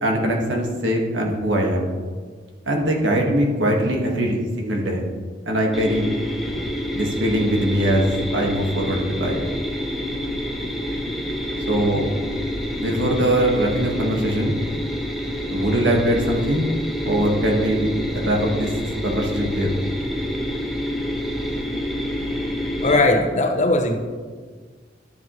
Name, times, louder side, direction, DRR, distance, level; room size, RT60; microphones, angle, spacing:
voice 1, 0.0-1.9 2.7-5.0 5.5-6.1 6.9-9.4 11.7-12.1 12.8-14.6 15.5-16.7 17.1-18.7 19.0-19.7, right 1 dB, 90° right, 1.7 m, -21 dB
sound 1, 5.7-23.0, equal, ahead, 0.8 m, -27 dB
voice 2, 22.8-24.0, left 2 dB, 40° left, 0.8 m, -18 dB
12.0 x 7.2 x 3.1 m
head